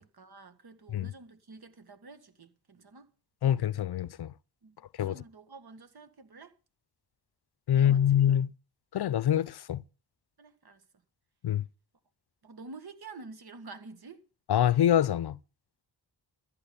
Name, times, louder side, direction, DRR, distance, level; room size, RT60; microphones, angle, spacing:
voice 1, 0.0-3.1 4.6-6.5 7.7-8.2 10.4-10.8 12.4-14.2, right 3 dB, 60° right, 1.8 m, -49 dB
voice 2, 3.4-4.3 5.0-5.2 7.7-8.5 8.9-9.8 11.4-11.6 14.5-15.4, left 10 dB, 65° left, 0.6 m, -25 dB
14.5 x 8.7 x 7.0 m
wide cardioid pair, 90°, 43 cm